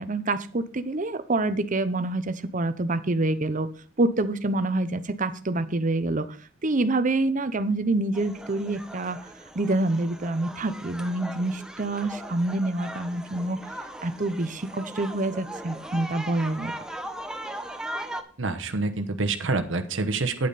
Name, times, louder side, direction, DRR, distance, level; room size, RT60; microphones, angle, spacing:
voice 1, 0.0-3.7 4.0-6.3 6.6-9.2 9.5-13.6 14.0-16.7, right 2 dB, 40° right, 13 dB, 0.8 m, -26 dB
sound 1, 8.1-18.2, right 1 dB, 5° right, 0.9 m, -39 dB
voice 2, 18.4-20.5, right 3 dB, 70° right, 7 dB, 1.1 m, -27 dB
9.5 x 8.7 x 4.1 m, 0.41 s
head